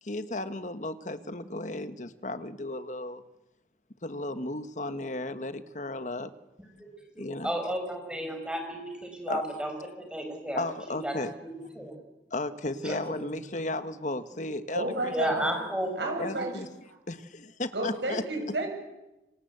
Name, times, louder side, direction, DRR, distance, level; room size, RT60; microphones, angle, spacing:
voice 1, 0.0-3.2 4.0-6.3 7.2-7.5 9.3-9.4 10.5-11.3 12.3-15.1 15.4-15.5 16.2-16.7 17.1-18.2, left 2 dB, 45° left, 11 dB, 1.4 m, -34 dB
voice 2, 6.6-11.9 12.8-13.0 15.1-15.9, right 1 dB, 5° right, 4 dB, 4.9 m, -34 dB
voice 3, 14.7-15.5 16.0-16.6 17.7-18.7, right 2 dB, 85° right, 3 dB, 7.7 m, -31 dB
28.0 x 26.0 x 8.2 m, 1.0 s
head